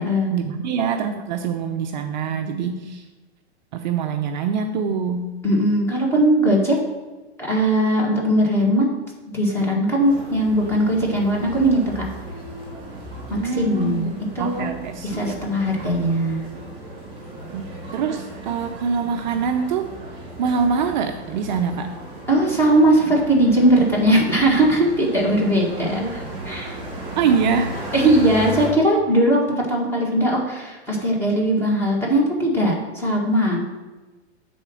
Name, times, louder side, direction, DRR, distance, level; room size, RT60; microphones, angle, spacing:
voice 1, 0.0-3.0 3.7-5.4 13.3-15.4 17.5-19.9 20.4-21.9 27.2-27.7, right 6 dB, 45° right, 5 dB, 0.5 m, -24 dB
voice 2, 5.4-6.8 7.4-8.9 9.3-12.1 13.3-14.7 15.0-16.4 22.3-26.8 27.9-33.6, right 1 dB, 5° left, -3 dB, 1.5 m, -19 dB
sound 1, 10.0-28.7, right 1 dB, 15° right, 2.6 m, -35 dB
7.9 x 4.2 x 6.1 m, 1.2 s
supercardioid pair, 160°, 33 cm